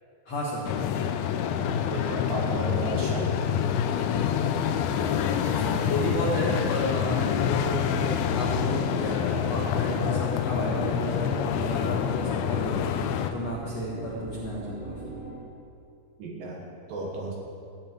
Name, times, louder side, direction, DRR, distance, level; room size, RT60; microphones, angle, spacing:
voice 1, 0.2-0.6 4.8-15.0, equal, 65° left, -5 dB, 1.6 m, -32 dB
sound 1, 0.7-13.3, left 8 dB, 85° left, 2.9 m, -27 dB
sound 2, 1.7-15.4, right 2 dB, 85° right, 4.7 m, -46 dB
voice 2, 1.9-3.3 16.2-17.3, right 2 dB, 65° right, -2 dB, 2.6 m, -34 dB
14.5 x 5.6 x 9.1 m, 2.5 s
omnidirectional pair, 5.1 m